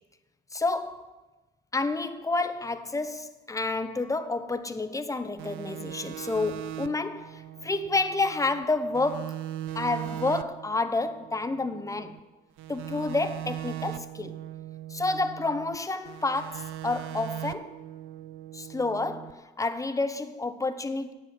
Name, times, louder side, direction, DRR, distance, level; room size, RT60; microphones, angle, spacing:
voice 1, 0.5-1.1 1.7-9.4 9.7-12.2 12.7-14.4 14.9-17.8 18.5-21.1, left 3 dB, 15° left, 0.8 m, -29 dB
sound 1, 5.4-8.6 8.9-12.2 12.6-15.8 16.1-19.3, right 13 dB, 90° right, 0.5 m, -39 dB
9.9 x 7.6 x 7.0 m
cardioid pair, 90°, 20 cm